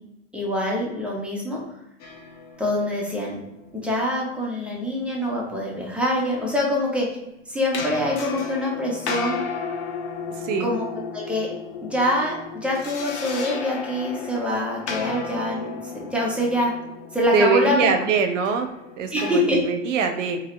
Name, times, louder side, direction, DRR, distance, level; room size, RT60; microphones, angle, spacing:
voice 1, 0.3-1.6 2.6-3.3 3.7-7.2 7.5-9.4 10.6-10.8 11.1-11.5 11.8-16.7 17.1-17.9 19.1-19.6, left 1 dB, 5° right, -4 dB, 0.4 m, -25 dB
sound 1, 2.0-4.1 7.7-19.3, left 5 dB, 65° left, 0.7 m, -34 dB
voice 2, 10.4-10.7 17.3-18.7 19.0-20.4, right 5 dB, 75° right, 6 dB, 0.6 m, -23 dB
2.5 x 2.0 x 2.9 m, 0.92 s
hypercardioid pair, 105°, 37 cm